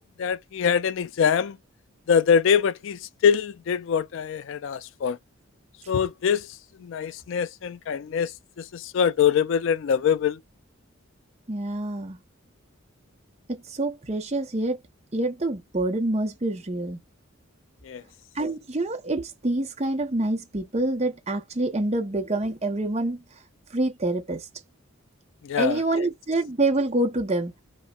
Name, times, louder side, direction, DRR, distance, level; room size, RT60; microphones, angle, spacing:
voice 1, 0.0-1.6 2.1-5.2 5.9-6.5 6.8-8.3 8.6-10.4 17.8-18.0 25.4-26.1, left 7 dB, 60° left, 0.3 m, -24 dB
voice 2, 11.5-12.2 13.5-14.8 15.1-17.0 18.4-23.2 23.7-24.4 25.6-27.5, right 2 dB, 30° right, 0.8 m, -26 dB
5.3 x 2.1 x 2.3 m
head